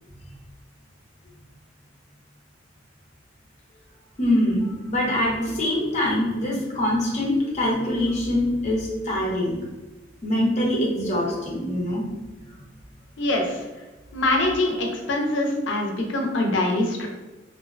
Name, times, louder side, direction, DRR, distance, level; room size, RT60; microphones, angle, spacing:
voice 1, 4.2-9.6 10.2-12.0, left 1 dB, 40° left, -3 dB, 0.7 m, -24 dB
voice 2, 13.2-13.6 14.1-17.1, left 2 dB, 75° left, 2 dB, 0.5 m, -24 dB
2.5 x 2.1 x 2.4 m, 1.1 s
head